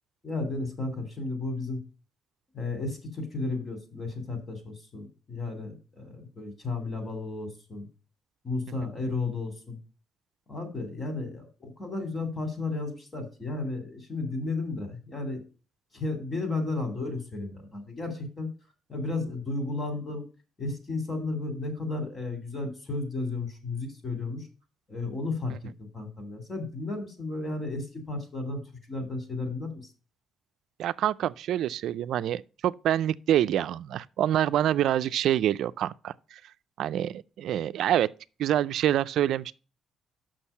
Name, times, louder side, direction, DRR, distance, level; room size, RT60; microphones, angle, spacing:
voice 1, 0.2-1.8 2.5-7.9 8.4-9.8 10.5-15.4 15.9-18.5 18.9-20.2 20.6-24.5 24.9-28.6 28.9-29.8, left 3 dB, 35° left, 3.1 m, -33 dB
voice 2, 30.8-36.4 36.8-38.1 38.4-39.5, right 11 dB, 75° right, 0.3 m, -26 dB
6.4 x 6.1 x 5.6 m
cardioid pair, 90°, 0 cm